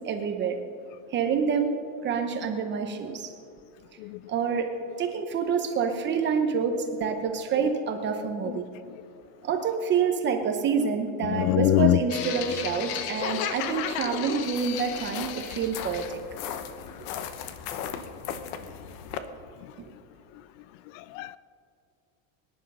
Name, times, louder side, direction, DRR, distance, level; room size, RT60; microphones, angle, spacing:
voice 1, 0.0-0.6 1.1-1.8 2.0-3.3 4.3-4.7 5.0-8.7 9.4-16.2, right 6 dB, 25° right, 6 dB, 0.9 m, -27 dB
voice 2, 11.2-12.0 20.9-21.4, left 17 dB, 75° left, 17 dB, 0.5 m, -23 dB
sound 1, 12.1-19.2, left 9 dB, 55° left, 1.0 m, -34 dB
23.5 x 10.0 x 5.5 m, 2.4 s
cardioid pair, 170°, 41 cm